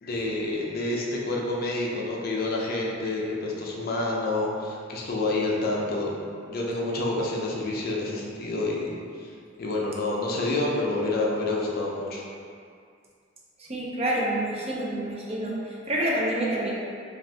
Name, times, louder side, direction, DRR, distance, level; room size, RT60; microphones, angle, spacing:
voice 1, 0.0-6.2 6.5-8.9 9.2-9.3 9.6-12.2, left 2 dB, 50° left, -3 dB, 0.5 m, -28 dB
voice 2, 13.6-16.7, right 1 dB, 30° right, -4 dB, 0.5 m, -28 dB
2.6 x 2.5 x 3.2 m, 2.3 s
head